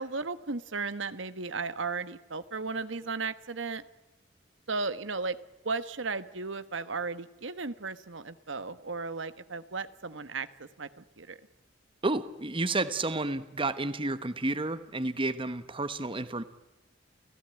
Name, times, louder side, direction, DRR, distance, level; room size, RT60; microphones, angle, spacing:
voice 1, 0.0-3.8 4.7-5.4 5.6-11.4, right 4 dB, 80° right, 12 dB, 1.4 m, -35 dB
voice 2, 12.0-16.4, right 2 dB, 30° right, 12 dB, 1.1 m, -31 dB
30.0 x 16.5 x 9.0 m, 1.0 s
head